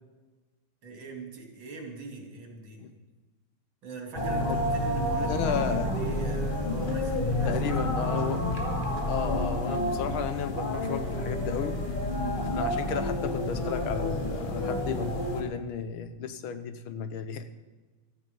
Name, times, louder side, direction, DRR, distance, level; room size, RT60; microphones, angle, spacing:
voice 1, 0.8-2.9 3.8-7.6 8.0-8.6 12.0-12.6, right 3 dB, 65° right, 2 dB, 3.4 m, -43 dB
sound 1, 4.1-15.4, left 1 dB, 25° left, 2.2 m, -29 dB
voice 2, 5.1-5.9 7.4-8.5 9.1-11.9 12.5-17.5, left 8 dB, 75° left, 11 dB, 1.7 m, -33 dB
15.0 x 14.0 x 5.3 m, 1.3 s
omnidirectional pair, 2.3 m